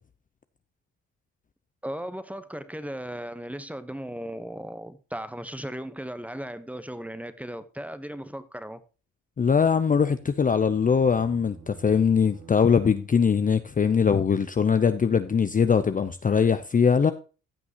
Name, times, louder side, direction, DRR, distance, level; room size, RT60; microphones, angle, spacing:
voice 1, 1.8-8.8, equal, 5° right, 1.0 m, -36 dB
voice 2, 9.4-17.1, left 6 dB, 25° left, 0.6 m, -22 dB
sound 1, 9.6-13.4, right 6 dB, 85° right, 2.0 m, -51 dB
15.5 x 6.1 x 2.9 m
cardioid pair, 90°, 30 cm